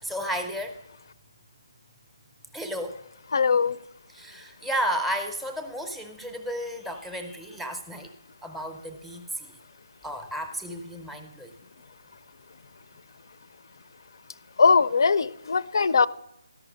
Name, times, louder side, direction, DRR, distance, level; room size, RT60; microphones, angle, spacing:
voice 1, 0.0-0.8 2.5-3.0 4.1-8.1 8.4-9.5 10.0-11.5, equal, ahead, 0.6 m, -33 dB
voice 2, 3.3-3.8 14.6-16.1, left 5 dB, 60° left, 0.4 m, -20 dB
13.0 x 5.7 x 5.1 m
hypercardioid pair, 165°, 2 cm